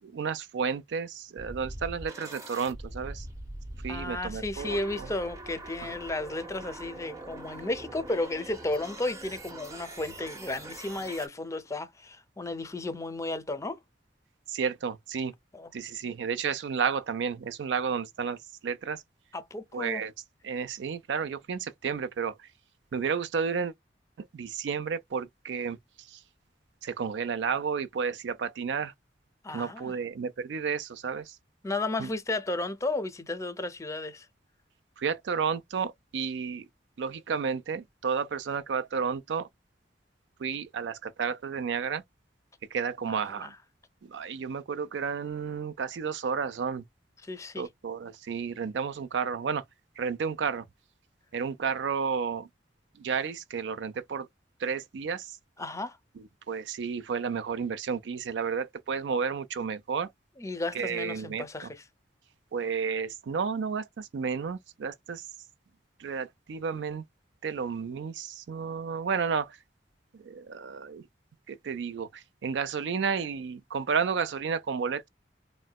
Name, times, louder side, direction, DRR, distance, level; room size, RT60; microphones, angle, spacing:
voice 1, 0.0-3.3 3.8-5.1 14.5-15.3 15.7-19.0 19.7-20.1 20.4-22.3 22.9-23.7 24.2-26.2 26.8-28.9 29.5-31.4 32.0-32.1 35.0-36.7 37.0-39.5 40.4-42.0 42.7-43.5 44.0-46.8 47.6-49.6 50.0-50.6 51.3-52.5 53.0-54.3 54.6-55.4 56.5-60.1 60.7-61.4 62.5-65.2 66.0-67.0 67.4-69.6 70.1-71.0 71.5-75.1, right 6 dB, 80° right, 0.4 m, -32 dB
sound 1, 1.4-11.3, right 1 dB, 20° right, 0.6 m, -43 dB
voice 2, 3.9-13.8 15.5-15.7 19.3-20.0 29.4-30.0 31.6-34.3 43.2-43.6 47.2-47.7 55.6-56.0 60.4-61.8, left 2 dB, 20° left, 0.5 m, -33 dB
3.8 x 2.1 x 2.2 m
head